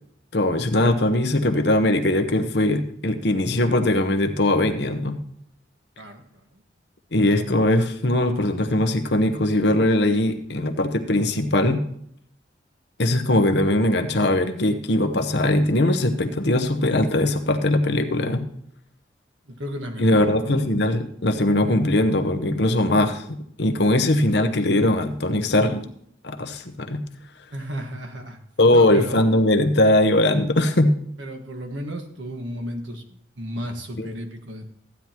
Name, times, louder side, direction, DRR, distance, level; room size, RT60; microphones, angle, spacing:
voice 1, 0.3-5.2 7.1-11.8 13.0-18.4 20.0-25.9 26.2-27.0 28.6-30.9 34.0-34.1, left 1 dB, 65° left, 7 dB, 0.9 m, -20 dB
voice 2, 6.0-6.6 19.4-20.6 27.5-28.4 28.7-29.1 31.2-34.7, equal, 90° right, 4 dB, 1.5 m, -34 dB
14.5 x 9.4 x 3.0 m, 0.69 s
head